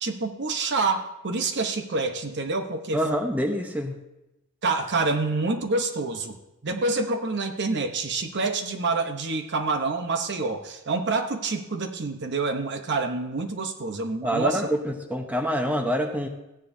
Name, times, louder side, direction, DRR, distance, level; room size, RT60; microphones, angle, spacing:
voice 1, 0.0-3.0 4.6-6.4 6.6-14.6, right 3 dB, 50° right, 5 dB, 0.9 m, -27 dB
voice 2, 2.9-3.9 14.2-16.3, equal, 5° right, 3 dB, 0.9 m, -26 dB
15.5 x 9.9 x 2.7 m, 0.95 s
head